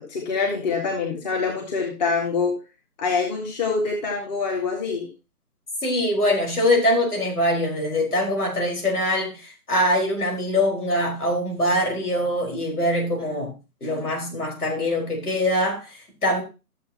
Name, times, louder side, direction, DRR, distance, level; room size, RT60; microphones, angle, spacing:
voice 1, 0.1-2.6 3.0-5.1, left 4 dB, 30° left, 1.9 m, -25 dB
voice 2, 5.8-13.5 13.8-16.4, left 1 dB, 70° left, 5.1 m, -23 dB
13.5 x 7.5 x 3.0 m
figure-of-eight pair, 145°, 46 cm